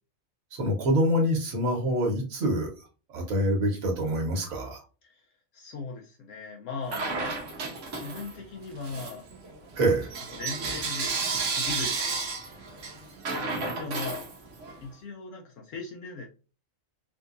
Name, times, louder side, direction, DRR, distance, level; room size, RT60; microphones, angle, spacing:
voice 1, 0.5-2.7 3.1-4.8 9.7-10.1, equal, 85° right, 0 dB, 1.5 m, -25 dB
voice 2, 5.5-7.1 8.0-9.2 10.3-11.1 11.5-12.0 13.6-14.2 14.8-16.2, left 4 dB, 75° left, 0 dB, 1.0 m, -38 dB
Bell / Coin (dropping), 6.9-8.4 8.8-14.8, right 4 dB, 65° right, 1.2 m, -32 dB
3.7 x 2.7 x 2.5 m, 0.34 s
omnidirectional pair, 1.4 m